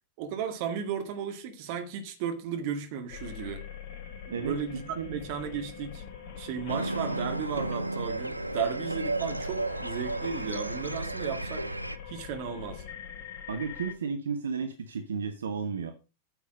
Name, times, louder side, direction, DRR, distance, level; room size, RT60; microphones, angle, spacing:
voice 1, 0.2-3.7 4.2-6.0 6.4-11.6 12.1-12.8, right 7 dB, 45° right, 1.9 m, -35 dB
sound 1, 3.1-13.9, left 7 dB, 45° left, 2.8 m, -44 dB
voice 2, 4.3-5.2 13.5-15.9, right 5 dB, 65° right, 1.1 m, -33 dB
sound 2, 6.7-12.0, right 2 dB, 85° right, 0.5 m, -33 dB
9.4 x 7.2 x 5.1 m
figure-of-eight pair, 90°, 0 cm